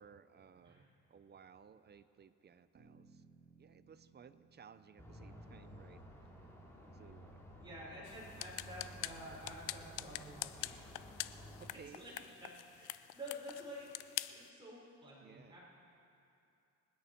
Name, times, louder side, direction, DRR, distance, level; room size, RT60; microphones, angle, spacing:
voice 1, 0.0-3.2 3.6-6.0 6.9-7.4 11.6-12.0 15.2-15.6, right 7 dB, 35° right, 13 dB, 0.7 m, -59 dB
sound 1, 2.7-7.1, right 5 dB, 50° right, 2.9 m, -66 dB
sound 2, 5.0-11.7, equal, 10° left, 2.7 m, -54 dB
voice 2, 7.6-10.9 12.0-12.1 12.4-15.6, equal, 15° right, -6 dB, 4.5 m, -50 dB
sound 3, 8.0-14.5, left 15 dB, 90° left, 0.5 m, -46 dB
25.5 x 9.7 x 4.5 m, 2.7 s
cardioid pair, 90°, 30 cm